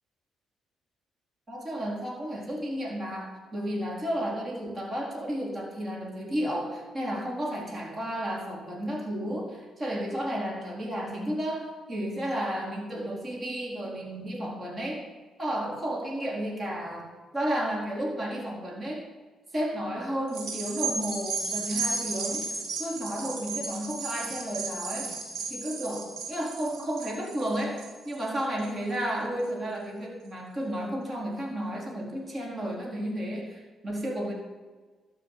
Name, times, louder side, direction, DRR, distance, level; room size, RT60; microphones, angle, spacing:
voice 1, 1.5-15.0 15.4-19.1 19.5-25.1 25.5-34.3, equal, 35° right, -2 dB, 4.2 m, -32 dB
sound 1, 20.3-29.0 29.4-29.5, right 4 dB, 75° right, 2.8 m, -34 dB
12.5 x 6.6 x 8.3 m, 1.3 s
supercardioid pair, 65°, 0 cm